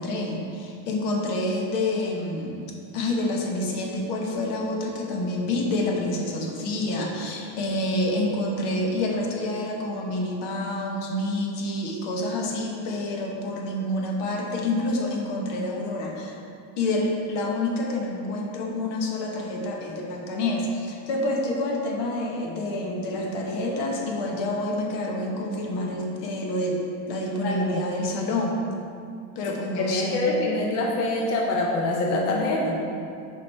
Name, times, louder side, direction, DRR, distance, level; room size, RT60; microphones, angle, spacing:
voice 1, 0.0-2.6 2.9-16.3 16.8-26.8 27.1-28.6 29.3-30.3, left 1 dB, 55° left, 0 dB, 1.1 m, -28 dB
voice 2, 27.4-27.9 29.8-32.8, left 2 dB, 30° left, -1 dB, 0.6 m, -25 dB
6.9 x 5.2 x 3.3 m, 2.5 s
supercardioid pair, 145°, 50 cm